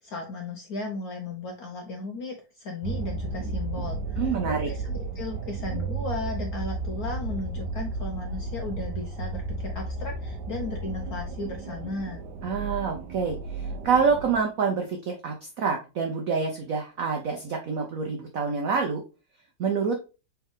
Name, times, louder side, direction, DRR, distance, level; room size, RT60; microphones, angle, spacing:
voice 1, 0.0-12.2, left 3 dB, 70° left, 3 dB, 0.8 m, -36 dB
sound 1, 2.8-14.4, right 3 dB, 65° right, 1.1 m, -33 dB
voice 2, 4.2-4.7 12.4-19.0 19.6-20.0, right 5 dB, 85° right, 3 dB, 0.7 m, -27 dB
4.3 x 3.5 x 3.4 m, 0.31 s
omnidirectional pair, 2.4 m